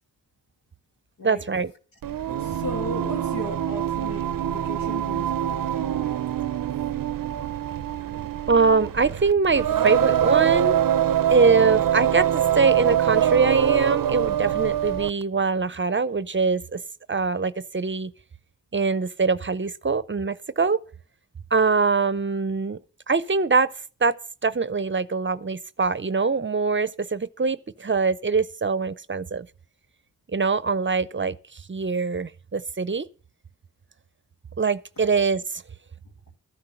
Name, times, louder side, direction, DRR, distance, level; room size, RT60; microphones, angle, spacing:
voice 1, 1.2-1.7 8.5-10.8 11.3-16.8 17.1-18.1 18.7-20.8 21.5-22.8 23.1-23.7 24.0-24.2 24.4-29.5 30.3-31.4 31.7-33.1 34.6-35.6, right 4 dB, 35° right, 0.6 m, -23 dB
Singing, 2.0-15.2, right 10 dB, 80° right, 0.5 m, -24 dB
voice 2, 2.4-6.2 8.0-8.1, left 2 dB, 85° left, 1.6 m, -37 dB
13.5 x 10.5 x 5.7 m
wide cardioid pair, 65°, 33 cm